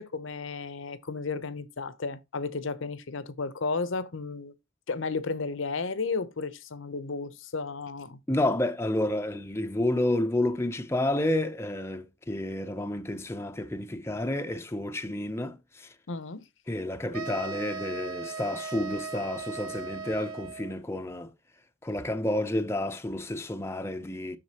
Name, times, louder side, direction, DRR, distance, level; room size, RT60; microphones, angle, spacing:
voice 1, 0.0-4.5 4.9-8.2 16.1-16.4, left 4 dB, 60° left, 0.7 m, -33 dB
voice 2, 8.3-15.9 16.7-21.3 21.8-24.4, left 1 dB, 10° left, 0.5 m, -30 dB
sound 1, 17.1-20.8, right 5 dB, 80° right, 0.8 m, -38 dB
7.5 x 6.5 x 2.8 m
head